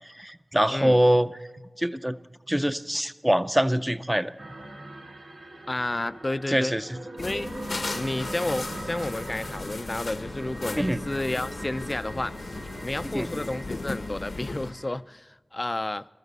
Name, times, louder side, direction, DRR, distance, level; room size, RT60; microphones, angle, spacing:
voice 1, 0.0-1.3 1.8-2.2 2.5-4.3 6.5-7.0 10.8-11.0 13.1-13.3, equal, 10° right, 0.6 m, -24 dB
voice 2, 0.7-1.0 5.7-6.7 7.2-7.5 8.0-16.1, left 2 dB, 35° left, 0.4 m, -31 dB
sound 1, 4.4-15.0, right 1 dB, 80° right, 1.9 m, -41 dB
sound 2, 7.2-14.7, left 3 dB, 90° left, 0.9 m, -36 dB
22.0 x 14.0 x 4.1 m
wide cardioid pair, 70°, 0 cm